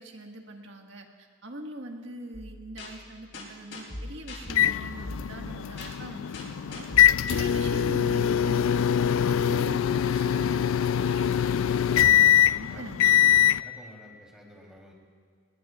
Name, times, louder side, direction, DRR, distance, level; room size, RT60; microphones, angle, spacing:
voice 1, 0.0-6.8 7.3-12.0 12.6-13.2, right 1 dB, 65° right, 2 dB, 1.7 m, -43 dB
sound 1, 2.3-7.7, left 2 dB, 65° left, 4.6 m, -41 dB
sound 2, 4.5-13.6, left 10 dB, 90° left, 0.4 m, -23 dB
voice 2, 13.6-14.9, equal, 5° right, -2 dB, 3.4 m, -50 dB
29.0 x 19.5 x 2.4 m, 2.1 s
head